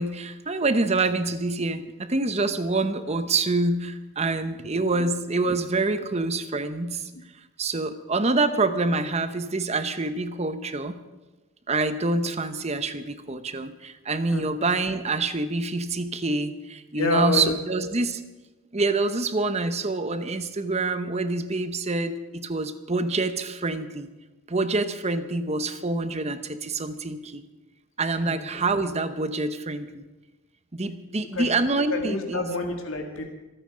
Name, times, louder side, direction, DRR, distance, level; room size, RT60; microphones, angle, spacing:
voice 1, 0.0-7.1 7.6-11.0 11.7-18.2 18.7-24.1 24.5-27.4 28.0-30.0 30.7-32.5, right 3 dB, 30° right, 10 dB, 0.9 m, -26 dB
voice 2, 17.0-17.9 28.2-28.3 30.8-30.9 31.4-31.6 31.9-33.3, left 2 dB, 70° left, 3 dB, 1.8 m, -28 dB
26.0 x 9.0 x 5.1 m, 1.1 s
head